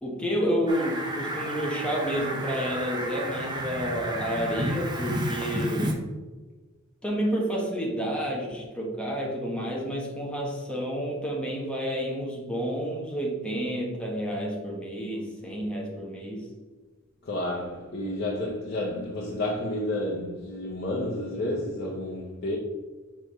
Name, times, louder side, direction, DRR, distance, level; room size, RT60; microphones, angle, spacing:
voice 1, 0.0-6.1 7.0-16.5, equal, 5° left, 1.3 m, -30 dB
Fowl, 0.7-5.9, right 1 dB, 20° right, 1.0 m, -32 dB
voice 2, 17.2-22.6, left 1 dB, 55° left, 0.9 m, -30 dB
6.7 x 5.1 x 3.2 m
head